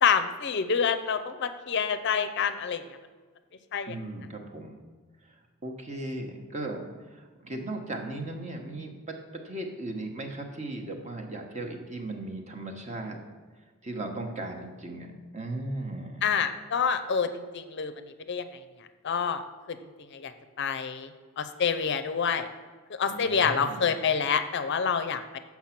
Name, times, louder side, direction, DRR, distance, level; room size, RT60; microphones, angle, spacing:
voice 1, 0.0-2.8 3.7-3.9 16.2-17.9 18.3-18.4 19.0-19.4 20.1-20.3 20.6-21.1 21.4-22.5 23.0-25.4, left 6 dB, 50° left, 10 dB, 0.5 m, -27 dB
voice 2, 3.9-4.8 5.6-13.2 13.8-15.1 15.3-16.2 23.1-23.9, right 2 dB, 30° right, 2 dB, 1.0 m, -37 dB
7.4 x 5.9 x 5.8 m, 1.4 s
head